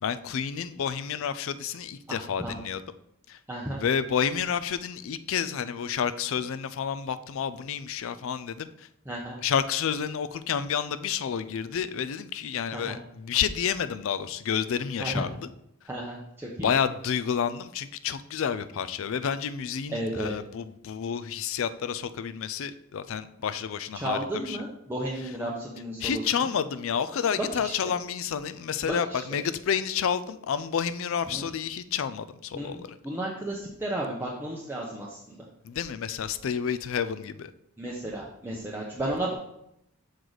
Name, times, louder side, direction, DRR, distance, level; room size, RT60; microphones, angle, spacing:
voice 1, 0.0-2.8 3.3-3.4 3.8-8.9 9.4-15.3 16.6-24.2 24.4-24.6 26.0-33.0 35.6-37.5, left 7 dB, 60° left, 13 dB, 0.4 m, -30 dB
voice 2, 2.1-2.6 3.5-3.8 9.1-9.4 12.7-13.0 15.0-15.3 15.9-16.7 19.9-20.3 23.9-26.5 27.4-27.8 28.8-29.2 31.3-31.5 32.5-35.4 37.8-39.3, right 1 dB, 10° right, -4 dB, 0.7 m, -33 dB
6.4 x 4.7 x 3.9 m, 0.77 s
head